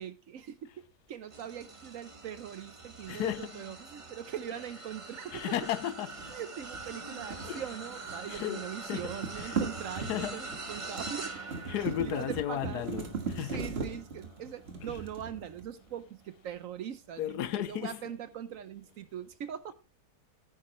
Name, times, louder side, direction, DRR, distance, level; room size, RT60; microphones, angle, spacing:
voice 1, 0.0-5.5 6.3-11.3 11.8-12.9 13.5-19.7, right 9 dB, 65° right, 0.9 m, -41 dB
sound 1, 1.3-16.8 17.3-17.6 18.8-18.9, right 3 dB, 25° right, 0.9 m, -45 dB
voice 2, 3.1-3.6 5.3-6.1 7.4-7.6 8.3-9.6 10.0-10.4 11.1-11.4 11.7-13.1 13.3-13.6 14.8-15.0 17.2-18.1, left 12 dB, 80° left, 1.2 m, -35 dB
sound 2, 6.1-8.3 8.6-15.9, right 5 dB, 40° right, 1.7 m, -39 dB
9.6 x 9.5 x 3.0 m
omnidirectional pair, 1.7 m